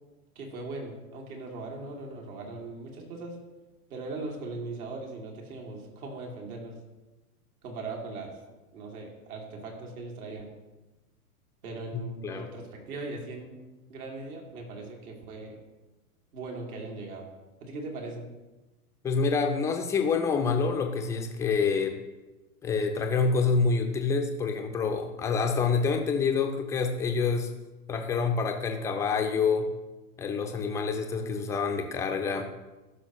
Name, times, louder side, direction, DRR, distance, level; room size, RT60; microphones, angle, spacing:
voice 1, 0.4-3.4 3.9-6.8 7.6-8.3 8.7-10.5 11.6-13.6 13.9-15.6 16.3-17.3 17.6-18.3, right 3 dB, 70° right, 0 dB, 2.5 m, -39 dB
voice 2, 11.9-12.5 19.0-22.0 22.6-27.5 27.9-29.7 30.2-32.5, left 5 dB, 5° left, 4 dB, 0.4 m, -27 dB
15.0 x 6.1 x 3.0 m, 1.1 s
hypercardioid pair, 120°, 45 cm